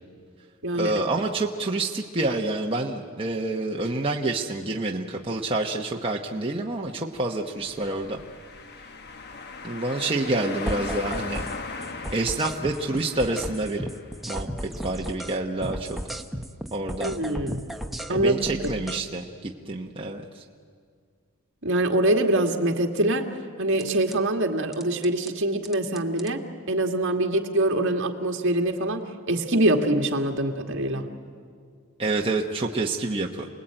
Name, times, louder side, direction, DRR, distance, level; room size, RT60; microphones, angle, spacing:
voice 1, 0.7-8.2 9.6-11.5 12.1-13.9 14.3-16.0 16.7-17.1 18.1-20.4 32.0-33.5, right 2 dB, 25° right, 0 dB, 1.1 m, -28 dB
sound 1, 7.5-14.2, left 3 dB, 50° left, 1.2 m, -38 dB
sound 2, 10.7-11.6 11.8-15.4 15.6-19.0 23.8-24.2 24.7-25.3 25.6-26.3, equal, ahead, 0.9 m, -34 dB
voice 2, 17.0-17.6 18.1-18.7 21.6-23.3 23.6-26.4 26.7-31.1, right 1 dB, 60° right, 3 dB, 2.0 m, -24 dB
28.5 x 20.0 x 8.9 m, 2.1 s
head